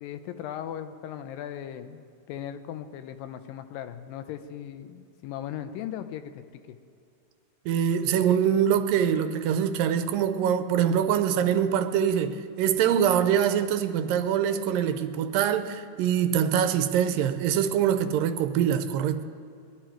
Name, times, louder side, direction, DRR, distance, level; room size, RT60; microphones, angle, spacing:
voice 1, 0.0-2.0 2.3-6.8, left 10 dB, 85° left, 2.4 m, -38 dB
voice 2, 7.7-19.2, right 9 dB, 80° right, 2.3 m, -24 dB
21.5 x 12.0 x 4.5 m
omnidirectional pair, 4.0 m